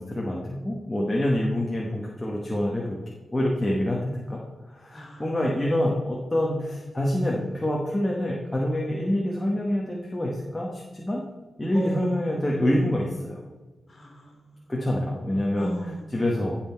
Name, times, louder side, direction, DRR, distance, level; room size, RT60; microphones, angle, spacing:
voice 1, 0.0-3.0 3.3-11.2 11.6-13.4 14.7-15.7 16.1-16.6, left 1 dB, 10° left, -3 dB, 1.3 m, -26 dB
voice 2, 4.9-5.3 6.7-6.8 11.7-12.4 13.9-14.7 15.6-16.4, equal, 30° left, 0 dB, 3.8 m, -36 dB
15.5 x 5.8 x 4.5 m, 1.3 s
wide cardioid pair, 140°, 0 cm